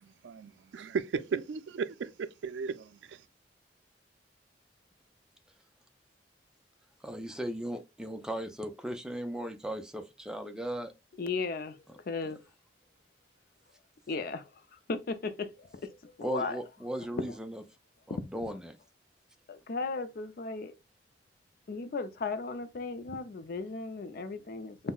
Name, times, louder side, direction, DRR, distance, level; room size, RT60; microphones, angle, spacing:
voice 1, 0.2-3.2, right 5 dB, 85° right, 0.3 m, -35 dB
voice 2, 7.0-10.9 16.2-17.6 18.1-18.8, right 1 dB, 5° right, 0.4 m, -37 dB
voice 3, 11.2-12.4 14.1-16.6 17.2-17.3 18.1-18.3 19.5-20.7 21.7-24.8, left 4 dB, 55° left, 0.4 m, -36 dB
5.4 x 2.1 x 2.3 m
head